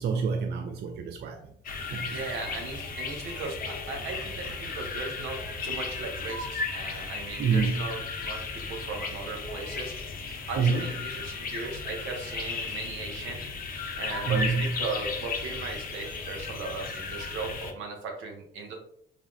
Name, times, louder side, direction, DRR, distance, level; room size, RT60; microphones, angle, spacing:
voice 1, 0.0-1.5 1.9-2.2 7.4-7.8 10.6-10.9 14.3-14.7, right 5 dB, 60° right, 4 dB, 0.4 m, -27 dB
sound 1, 1.6-17.7, left 4 dB, 45° left, 0.6 m, -35 dB
voice 2, 2.0-9.9 10.5-13.4 13.9-18.8, right 4 dB, 85° right, 2 dB, 0.7 m, -37 dB
3.3 x 2.1 x 2.4 m, 0.66 s
cardioid pair, 90°, 20 cm